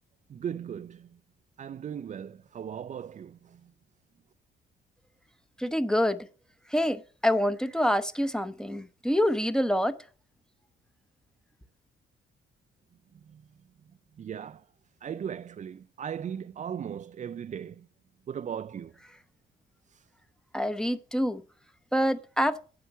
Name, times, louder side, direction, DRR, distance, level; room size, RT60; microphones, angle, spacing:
voice 1, 0.3-1.1 1.6-3.6 13.3-13.4 14.2-14.6 15.0-17.9 18.3-18.9, right 8 dB, 40° right, 0.4 m, -37 dB
voice 2, 5.6-6.3 6.7-9.9 20.5-21.4 21.9-22.6, equal, 5° left, 0.8 m, -26 dB
9.4 x 5.9 x 6.9 m
cardioid pair, 90°, 20 cm